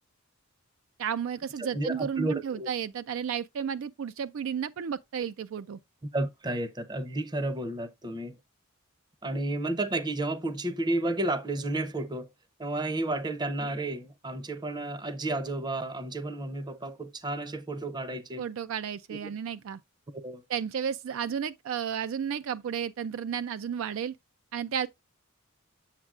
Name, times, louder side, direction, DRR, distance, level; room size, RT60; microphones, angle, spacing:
voice 1, 1.0-5.8 18.4-19.8 20.5-24.1 24.5-24.9, right 8 dB, 70° right, 0.4 m, -32 dB
voice 2, 1.6-2.7 6.1-8.4 9.2-12.3 12.6-18.5 19.2-19.3 20.2-20.4, right 2 dB, 20° right, 0.6 m, -32 dB
7.3 x 7.2 x 2.4 m
head